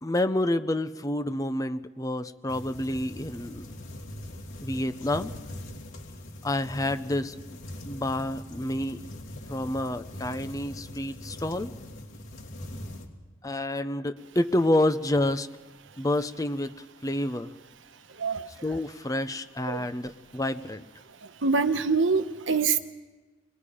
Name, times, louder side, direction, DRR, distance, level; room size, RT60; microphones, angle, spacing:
voice 1, 0.0-3.7 4.6-5.3 6.4-7.3 7.9-9.1 9.5-11.7 13.4-15.5 16.0-16.7 17.0-17.5 18.6-20.8, left 1 dB, 20° left, 11 dB, 0.7 m, -28 dB
sound 1, 2.5-13.1, left 1 dB, 85° left, 2.9 m, -42 dB
voice 2, 18.2-18.5 19.7-19.9 21.4-22.8, right 4 dB, 80° right, 9 dB, 1.0 m, -25 dB
27.0 x 21.5 x 4.9 m, 1.2 s
head